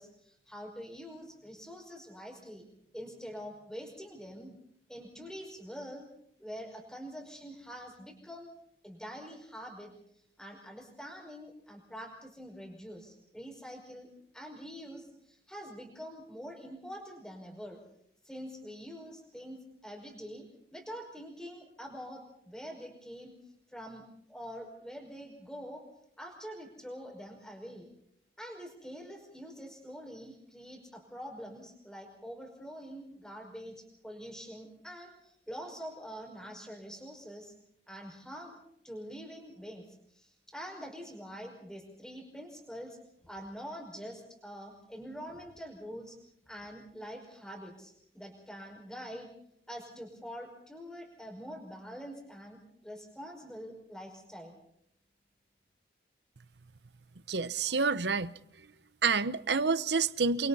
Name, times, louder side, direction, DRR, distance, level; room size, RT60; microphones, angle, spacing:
voice 1, 0.0-2.7 2.9-4.5 4.9-6.1 6.4-8.5 8.8-9.9 10.4-14.1 14.3-17.8 18.2-20.5 20.7-23.3 23.7-24.0 24.3-25.8 26.2-27.9 28.4-37.5 37.9-38.6 38.8-39.8 40.1-43.0 43.2-46.2 46.5-49.3 49.7-52.6 52.8-54.6, equal, 5° left, 5.5 m, -45 dB
voice 2, 57.3-58.3 59.0-60.5, right 4 dB, 80° right, 0.9 m, -28 dB
29.5 x 24.0 x 4.2 m
head